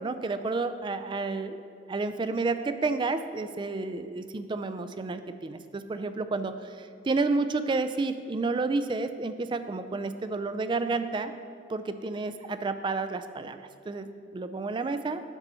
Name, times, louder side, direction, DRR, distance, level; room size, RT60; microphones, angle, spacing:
voice 1, 0.0-1.6 1.9-11.3 11.7-15.2, right 3 dB, 25° right, 10 dB, 0.3 m, -30 dB
10.5 x 4.0 x 5.5 m, 2.3 s
head